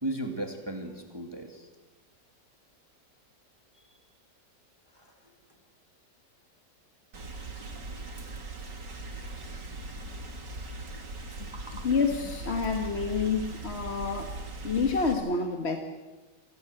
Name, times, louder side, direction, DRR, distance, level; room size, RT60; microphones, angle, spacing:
voice 1, 0.0-1.7 3.9-4.0 4.9-5.3 11.5-11.9, right 1 dB, 15° right, 4 dB, 2.0 m, -37 dB
Rain, 7.1-15.1, right 2 dB, 85° right, 3.2 m, -40 dB
voice 2, 11.8-14.3 14.6-15.8, left 5 dB, 40° left, 5 dB, 1.6 m, -28 dB
24.5 x 16.5 x 7.9 m, 1.2 s
omnidirectional pair, 1.8 m